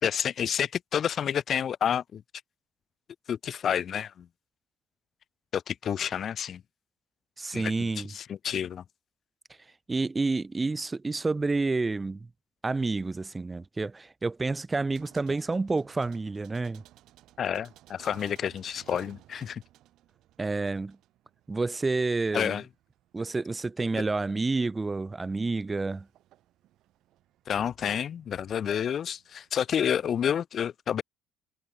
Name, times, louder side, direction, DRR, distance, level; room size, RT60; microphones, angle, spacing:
voice 1, 0.0-2.2 3.3-4.3 5.5-6.6 7.5-7.7 8.1-8.8 17.4-19.6 22.3-22.6 27.5-31.0, left 8 dB, 45° left, 0.5 m, -29 dB
voice 2, 7.4-8.1 9.9-12.3 12.6-16.8 20.4-21.0 21.5-22.6 23.1-26.1, right 3 dB, 20° right, 0.7 m, -29 dB
sound 1, 14.9-30.1, right 14 dB, 60° right, 4.6 m, -58 dB
hypercardioid pair, 65°, 0 cm